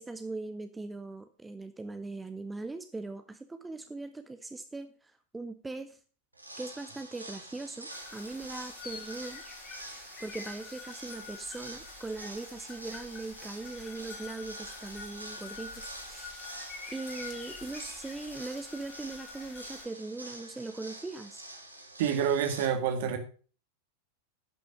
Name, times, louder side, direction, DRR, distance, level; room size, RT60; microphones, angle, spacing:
voice 1, 0.0-6.0 6.6-9.4 9.9-16.4 16.9-21.4, right 3 dB, 10° right, 9 dB, 0.7 m, -40 dB
sound 1, 6.3-22.6, right 1 dB, 85° right, 1.5 m, -47 dB
sound 2, 7.9-19.9, left 4 dB, 30° left, 2.5 m, -47 dB
voice 2, 22.0-23.2, right 8 dB, 55° right, 7 dB, 1.8 m, -27 dB
11.0 x 6.1 x 5.0 m, 0.38 s
figure-of-eight pair, 90°, 0 cm